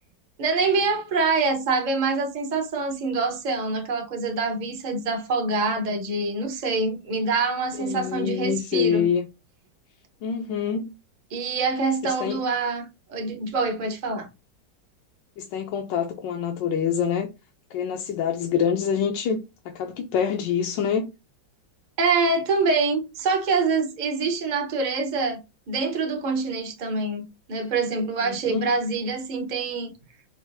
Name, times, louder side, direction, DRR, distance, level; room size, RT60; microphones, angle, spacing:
voice 1, 0.4-9.1 11.3-14.3 22.0-29.9, right 4 dB, 65° right, 0.4 m, -25 dB
voice 2, 7.7-9.3 10.2-11.0 12.0-12.4 15.4-17.3 17.7-21.1 28.2-28.7, left 7 dB, 80° left, 1.2 m, -26 dB
4.4 x 2.4 x 3.4 m
omnidirectional pair, 2.0 m